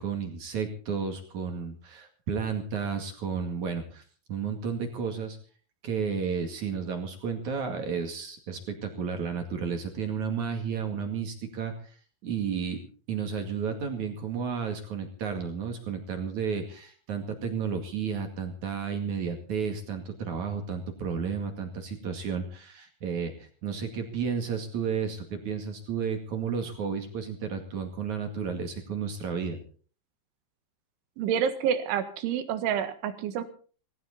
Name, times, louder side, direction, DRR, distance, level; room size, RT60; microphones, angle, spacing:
voice 1, 0.0-4.0 4.3-5.4 5.8-11.9 12.2-29.6, right 6 dB, 50° right, 5 dB, 3.0 m, -32 dB
voice 2, 31.2-33.4, right 8 dB, 90° right, 10 dB, 4.0 m, -28 dB
18.5 x 17.0 x 4.2 m, 0.41 s
omnidirectional pair, 5.4 m